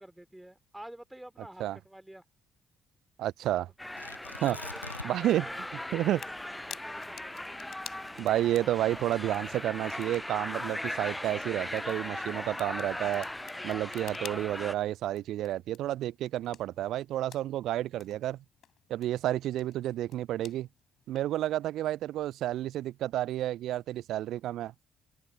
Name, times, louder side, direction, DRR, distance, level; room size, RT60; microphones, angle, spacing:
voice 1, 0.0-2.2 4.2-4.9 5.4-5.6 6.0-6.3 6.7-7.2, right 1 dB, 5° right, 3.5 m, -49 dB
voice 2, 3.2-3.7 4.4-4.6 5.0-5.5 5.9-6.2 8.2-13.3 13.6-18.4 18.9-20.7 21.1-24.7, right 13 dB, 60° right, 0.7 m, -30 dB
sound 1, 3.8-14.7, left 1 dB, 10° left, 0.7 m, -38 dB
Tearing, 4.0-5.4 5.7-5.8 6.3-8.7 9.4-9.8, left 3 dB, 90° left, 1.2 m, -45 dB
sound 2, 4.7-21.4, left 10 dB, 55° left, 6.0 m, -53 dB
figure-of-eight pair, 40°, 0 cm